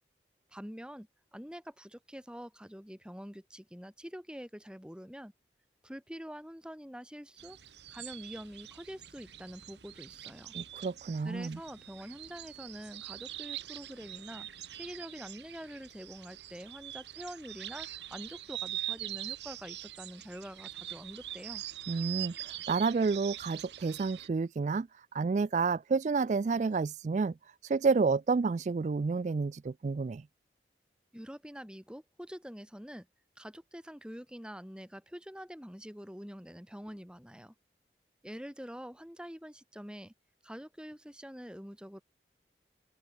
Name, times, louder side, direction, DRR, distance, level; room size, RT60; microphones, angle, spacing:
voice 1, 0.5-5.3 5.8-7.6 7.9-10.5 11.2-14.5 14.7-21.6 31.1-33.1 33.4-37.5 38.2-40.1 40.4-42.0, equal, 5° right, 4.3 m, -46 dB
sound 1, 7.4-24.3, right 13 dB, 85° right, 2.0 m, -43 dB
voice 2, 10.5-11.6 21.9-24.9 25.1-27.3 27.6-30.2, right 4 dB, 45° right, 0.3 m, -30 dB
open air
head